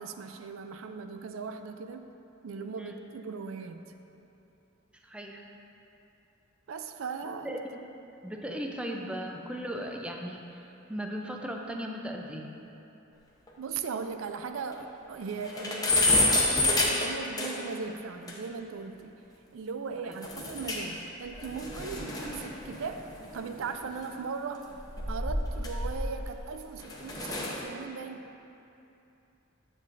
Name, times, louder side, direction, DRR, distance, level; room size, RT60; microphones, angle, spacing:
voice 1, 0.0-2.1 2.4-3.8 6.7-7.6 13.6-19.2 19.5-24.7 25.1-28.3, right 5 dB, 70° right, 7 dB, 0.4 m, -38 dB
voice 2, 4.9-5.4 7.4-7.8 8.2-10.6 10.9-12.5 20.0-20.2, equal, 5° right, 1 dB, 0.4 m, -37 dB
sound 1, 13.5-13.6 13.9-14.0 14.3-14.4 14.8-14.9 15.2-17.8 18.3-18.4 20.2-21.0 21.3-23.9 24.7-26.3 26.8-27.6, left 2 dB, 20° left, 0.7 m, -29 dB
9.9 x 7.5 x 2.6 m, 2.8 s
head